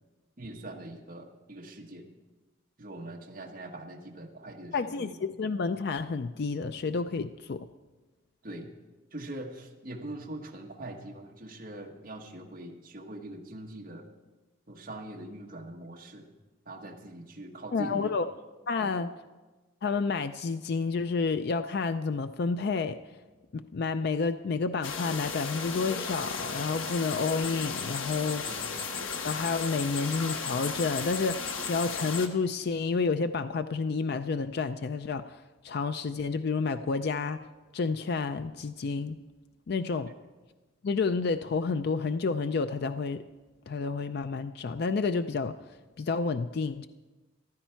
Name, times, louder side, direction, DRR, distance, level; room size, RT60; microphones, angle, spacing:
voice 1, 0.4-2.1 2.8-5.2 8.4-8.8 9.1-14.1 14.7-16.3 16.6-18.1 18.8-19.1 28.4-28.7, right 1 dB, 45° right, 1 dB, 1.4 m, -42 dB
voice 2, 4.7-7.7 17.7-18.3 18.7-19.1 19.8-23.0 23.5-28.4 29.2-37.4 37.7-39.1 39.7-40.1 40.8-43.2 43.7-45.5 46.0-46.9, left 4 dB, 55° left, 10 dB, 0.4 m, -30 dB
sound 1, 24.8-32.3, left 5 dB, 85° left, 1.2 m, -35 dB
14.5 x 12.5 x 4.6 m, 1.2 s
head